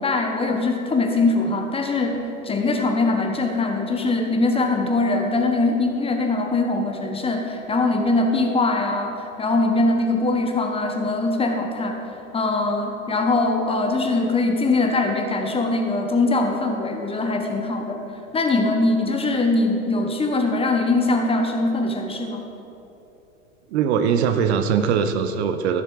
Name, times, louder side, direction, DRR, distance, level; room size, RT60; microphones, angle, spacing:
voice 1, 0.0-12.0 12.3-18.0 18.3-22.4, left 2 dB, 15° left, 3 dB, 1.1 m, -22 dB
voice 2, 23.7-25.8, right 7 dB, 55° right, 8 dB, 0.9 m, -21 dB
14.5 x 6.5 x 4.9 m, 2.9 s
figure-of-eight pair, 95°, 39 cm